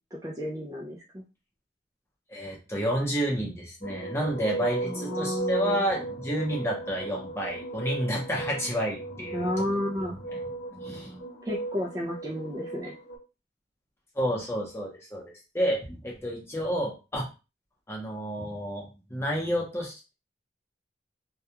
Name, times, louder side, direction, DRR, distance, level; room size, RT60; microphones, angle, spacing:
voice 1, 0.2-1.2 4.8-5.8 9.3-10.2 11.4-13.0, left 1 dB, 20° right, -3 dB, 0.3 m, -32 dB
voice 2, 2.3-9.6 10.3-10.4 10.7-11.2 14.1-17.3 17.9-20.1, equal, 15° left, -2 dB, 0.7 m, -30 dB
sound 1, 3.8-13.2, right 2 dB, 80° left, 0.8 m, -36 dB
2.3 x 2.3 x 2.8 m, 0.30 s
head